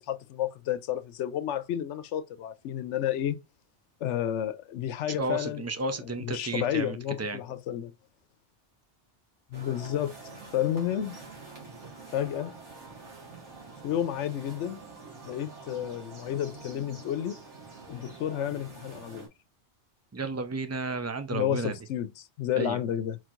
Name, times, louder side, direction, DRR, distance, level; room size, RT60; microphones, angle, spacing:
voice 1, 0.0-3.4 4.0-5.6 6.0-7.9 9.5-10.1 10.5-11.2 12.1-12.5 13.8-14.8 15.2-17.4 17.9-19.3 21.3-23.2, left 11 dB, 85° left, 0.9 m, -31 dB
voice 2, 5.2-7.4 20.1-21.8 22.6-22.8, right 3 dB, 20° right, 0.4 m, -32 dB
sound 1, 9.5-19.3, right 3 dB, 90° right, 2.1 m, -46 dB
4.5 x 4.4 x 2.5 m
omnidirectional pair, 1.2 m